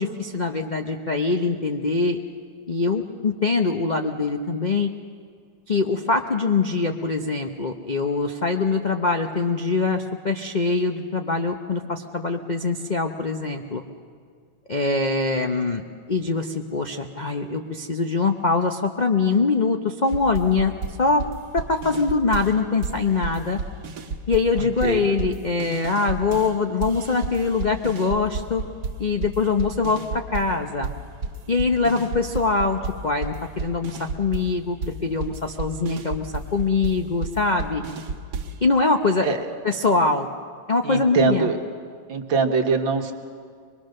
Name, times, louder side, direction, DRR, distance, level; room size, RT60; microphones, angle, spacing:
voice 1, 0.0-2.2 2.7-4.9 5.7-13.8 14.7-20.7 21.0-21.2 21.5-23.6 24.3-28.6 29.0-30.9 31.5-37.8 38.6-39.3 39.6-40.3 40.7-41.5, left 4 dB, 80° left, 4 dB, 0.4 m, -23 dB
sound 1, 20.1-22.6 22.8-26.5 26.8-30.6 30.8-38.6, right 4 dB, 55° right, 1.8 m, -32 dB
voice 2, 40.8-41.6 42.1-43.1, right 5 dB, 75° right, 4 dB, 2.1 m, -22 dB
24.0 x 22.0 x 6.5 m, 2.1 s
omnidirectional pair, 2.1 m